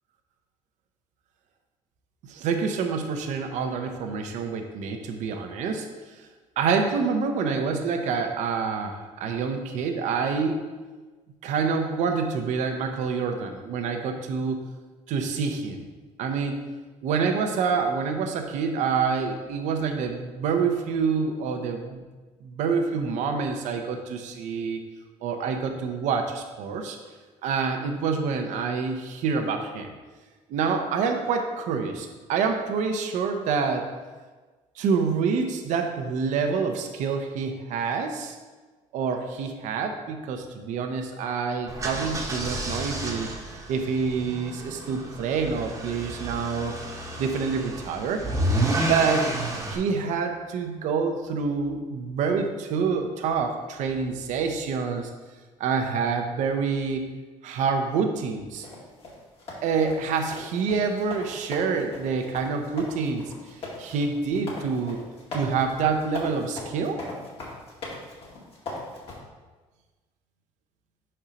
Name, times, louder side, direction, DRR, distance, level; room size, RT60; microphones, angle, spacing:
voice 1, 2.2-5.9 6.6-10.6 11.4-14.6 15.1-15.8 16.2-16.6 17.0-22.0 22.4-24.8 25.2-27.0 27.4-29.9 30.5-33.9 34.8-38.4 38.9-43.3 43.7-46.7 47.2-48.3 48.7-49.3 49.7-55.1 55.6-57.0 57.4-58.7 59.6-63.2 63.8-65.0 65.3-67.0, right 5 dB, 75° right, 5 dB, 0.8 m, -27 dB
sound 1, 41.7-49.8, right 1 dB, 25° right, 1.0 m, -30 dB
sound 2, 58.6-69.2, left 2 dB, 50° left, 2.0 m, -39 dB
5.4 x 4.4 x 5.0 m, 1.3 s
cardioid pair, 115°, 13 cm